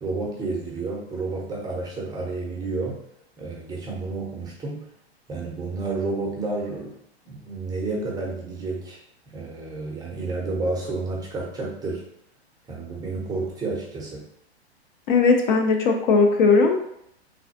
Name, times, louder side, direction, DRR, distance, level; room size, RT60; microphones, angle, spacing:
voice 1, 0.0-3.0 3.4-4.9 5.3-7.0 7.3-9.0 9.3-12.0 12.7-14.2, right 3 dB, 10° right, -3 dB, 0.7 m, -30 dB
voice 2, 15.1-16.8, left 4 dB, 50° left, 3 dB, 0.5 m, -18 dB
3.3 x 2.3 x 2.6 m, 0.76 s
hypercardioid pair, 110°, 33 cm